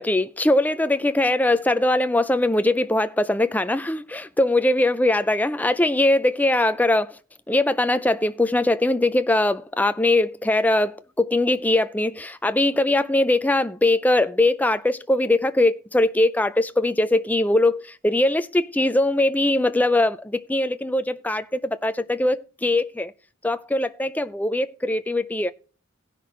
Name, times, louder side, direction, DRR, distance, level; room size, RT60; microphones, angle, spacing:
voice 1, 0.0-7.2 7.5-23.1 23.4-25.5, left 1 dB, 10° left, 0.4 m, -21 dB
17.0 x 5.9 x 3.1 m
head